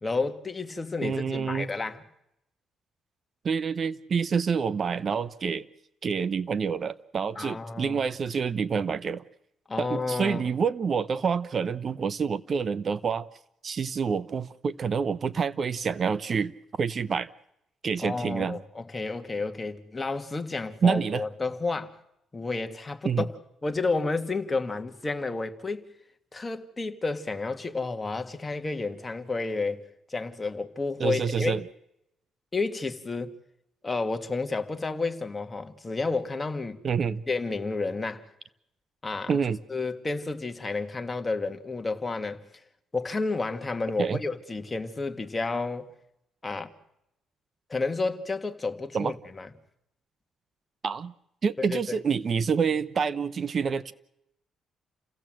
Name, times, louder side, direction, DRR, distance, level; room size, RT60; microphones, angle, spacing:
voice 1, 0.0-2.0 7.4-8.0 9.7-10.5 18.0-21.9 22.3-23.3 23.6-25.9 26.3-29.8 30.1-31.6 32.5-33.3 33.8-36.8 37.3-38.3 39.0-39.4 39.7-42.4 42.9-45.9 46.4-46.7 47.7-49.5 51.6-51.8, left 3 dB, 25° left, 1.9 m, -31 dB
voice 2, 1.0-1.7 3.4-5.7 6.0-9.2 9.8-13.3 13.6-17.3 17.8-18.6 20.8-21.2 23.0-23.2 31.0-31.6 36.8-37.2 39.3-39.6 44.0-44.2 48.9-49.1 50.8-51.1 51.4-53.9, right 6 dB, 45° right, 0.8 m, -27 dB
29.5 x 16.5 x 7.7 m
cardioid pair, 90°, 0 cm